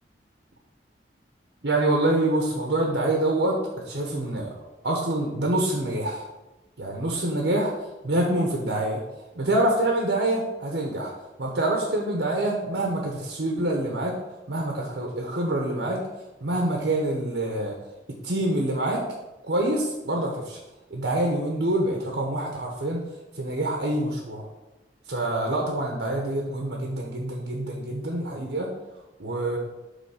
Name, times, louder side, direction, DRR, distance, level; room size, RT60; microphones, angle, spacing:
voice 1, 1.6-4.5 4.8-6.3 6.8-7.7 8.0-9.0 9.3-11.1 11.4-14.1 14.5-16.0 16.4-17.7 18.2-19.0 19.4-20.6 20.9-23.0 23.3-24.5 25.1-28.7 29.2-29.6, right 1 dB, 75° right, 0 dB, 1.1 m, -26 dB
8.3 x 3.5 x 5.7 m, 1.0 s
head